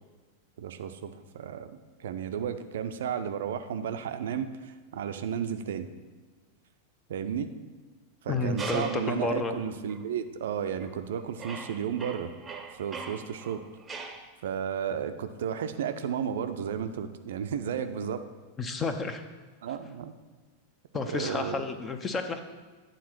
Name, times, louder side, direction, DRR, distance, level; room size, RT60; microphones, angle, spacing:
voice 1, 0.6-5.9 7.1-7.5 8.2-12.3 12.7-13.6 14.4-18.2 19.6-20.1 21.1-21.6, right 8 dB, 60° right, 9 dB, 0.4 m, -33 dB
voice 2, 8.3-9.6 18.6-19.2 20.9-22.4, left 3 dB, 20° left, 8 dB, 0.6 m, -31 dB
sound 1, 8.6-9.2 9.9-10.0 10.7-11.1 11.4-14.3, right 4 dB, 15° right, 0.8 m, -40 dB
9.2 x 3.9 x 5.9 m, 1.4 s
figure-of-eight pair, 90°, 0 cm